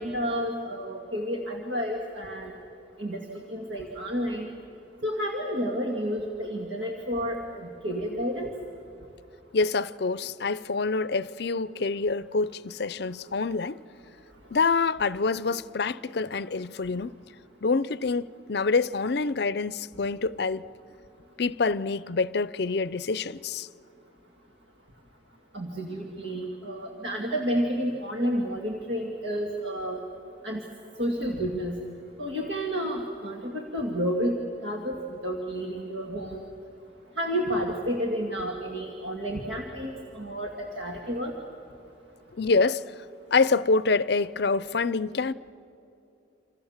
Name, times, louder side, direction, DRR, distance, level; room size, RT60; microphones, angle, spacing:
voice 1, 0.0-2.5 3.0-4.5 5.0-8.5 25.5-30.0 30.4-30.6 31.0-31.8 32.2-36.4 37.2-41.3, equal, 70° right, 2.2 m, -30 dB
voice 2, 9.5-13.8 14.5-17.1 17.6-20.7 21.4-23.7 42.4-42.8 43.3-45.3, left 4 dB, 55° left, 0.5 m, -26 dB
28.5 x 27.0 x 7.3 m
head